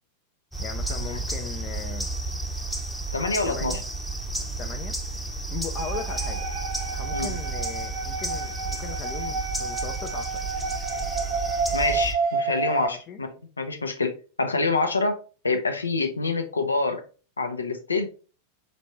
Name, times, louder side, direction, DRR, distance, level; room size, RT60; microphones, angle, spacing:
sound 1, 0.5-12.1, right 3 dB, 5° left, 0.8 m, -32 dB
voice 1, 0.6-2.1 3.4-3.8 4.6-5.0 5.5-6.5 6.9-10.5 12.9-13.2, left 8 dB, 30° left, 0.4 m, -38 dB
voice 2, 3.1-3.8 7.1-7.3 11.7-15.2 15.4-17.0 17.4-18.1, left 3 dB, 75° left, 0.6 m, -26 dB
sound 2, 5.8-12.9, right 4 dB, 50° right, 0.6 m, -30 dB
5.0 x 3.3 x 2.9 m
figure-of-eight pair, 90°, 0 cm